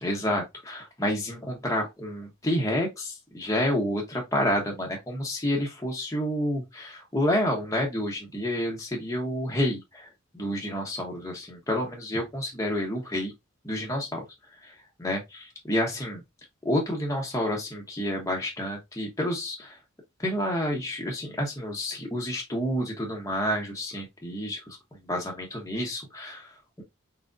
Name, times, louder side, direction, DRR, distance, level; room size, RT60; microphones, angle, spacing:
voice 1, 0.0-13.3 13.6-14.2 14.6-16.2 16.6-19.8 20.2-24.8 25.1-26.8, equal, 15° left, 1.0 m, -29 dB
4.9 x 3.6 x 2.6 m
head